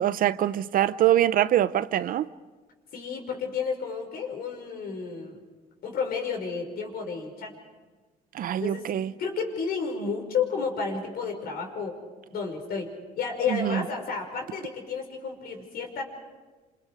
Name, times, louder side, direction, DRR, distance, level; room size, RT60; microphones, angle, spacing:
voice 1, 0.0-2.3 8.3-9.1 13.5-13.8, right 11 dB, 55° right, 0.7 m, -24 dB
voice 2, 2.9-5.4 5.8-7.5 8.6-8.9 9.2-12.0 12.3-16.0, left 5 dB, 65° left, 5.7 m, -31 dB
29.0 x 27.0 x 5.0 m
cardioid pair, 110°, 17 cm